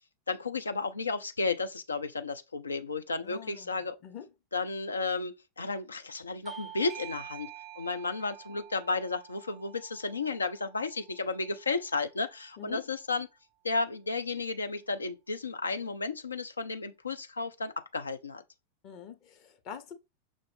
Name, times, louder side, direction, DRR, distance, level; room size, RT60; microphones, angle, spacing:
voice 1, 0.3-4.0 4.5-7.5 7.8-13.3 13.6-18.4, left 3 dB, 75° left, 0.4 m, -33 dB
voice 2, 3.1-4.3 12.6-12.9 18.8-19.9, left 8 dB, 40° left, 0.9 m, -45 dB
Bell / Doorbell, 6.5-11.6, right 12 dB, 25° right, 0.3 m, -48 dB
6.1 x 2.5 x 3.3 m
figure-of-eight pair, 90°, 0 cm